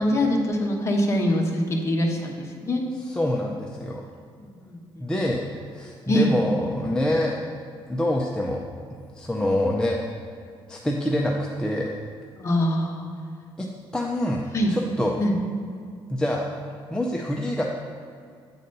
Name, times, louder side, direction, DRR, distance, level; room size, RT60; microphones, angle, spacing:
voice 1, 0.0-2.8 4.4-5.1 6.1-6.3 12.4-13.1 14.5-14.7 15.2-15.4, left 1 dB, 30° left, 1 dB, 0.9 m, -24 dB
voice 2, 3.0-4.0 5.0-5.4 5.7-7.4 7.9-8.6 9.1-10.0 10.7-11.3 11.6-11.9 13.6-14.4 14.7-15.2 16.1-16.5 16.9-17.6, left 1 dB, 10° left, -1 dB, 0.5 m, -25 dB
8.5 x 4.1 x 5.2 m, 2.2 s
cardioid pair, 145°, 10 cm